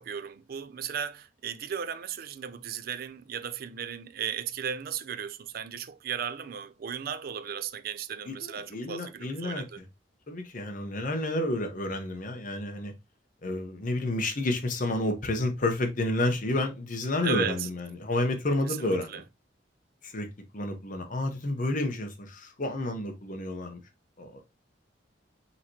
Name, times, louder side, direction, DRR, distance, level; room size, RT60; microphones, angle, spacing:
voice 1, 0.0-9.8 17.2-17.7 18.7-19.2, right 8 dB, 55° right, 0.4 m, -36 dB
voice 2, 8.3-9.8 10.3-12.9 13.4-19.2 20.0-20.3 20.5-23.8 24.2-24.4, left 1 dB, 45° left, 0.9 m, -30 dB
5.7 x 3.0 x 2.8 m
head